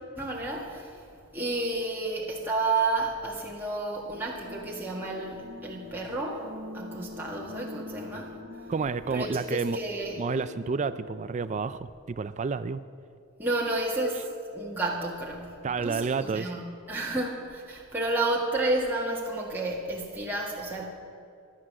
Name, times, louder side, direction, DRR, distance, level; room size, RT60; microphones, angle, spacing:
voice 1, 0.2-1.0 1.3-6.5 6.7-8.3 9.1-10.2 13.4-14.3 14.5-20.9, right 2 dB, 10° right, -4 dB, 1.8 m, -31 dB
sound 1, 4.1-11.3, left 2 dB, 55° right, 1.2 m, -44 dB
voice 2, 8.7-9.8 10.2-12.8 15.6-16.5, right 5 dB, 35° right, 14 dB, 0.4 m, -30 dB
15.5 x 11.5 x 7.6 m, 2.4 s
head